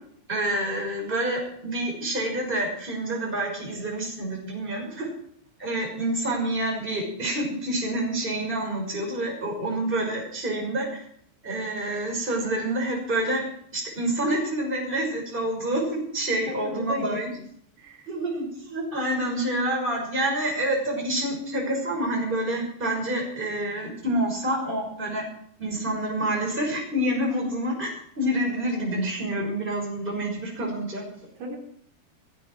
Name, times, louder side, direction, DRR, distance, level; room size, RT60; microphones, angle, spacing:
voice 1, 0.3-5.1 5.6-11.0 11.4-13.4 13.7-17.3 18.1-25.2 25.6-27.9 28.2-31.3, right 1 dB, 10° right, 0 dB, 5.7 m, -28 dB
voice 2, 16.5-17.4 17.8-18.1 31.4-31.6, right 1 dB, 70° right, -1 dB, 5.3 m, -35 dB
18.5 x 15.5 x 4.7 m, 0.66 s
omnidirectional pair, 5.0 m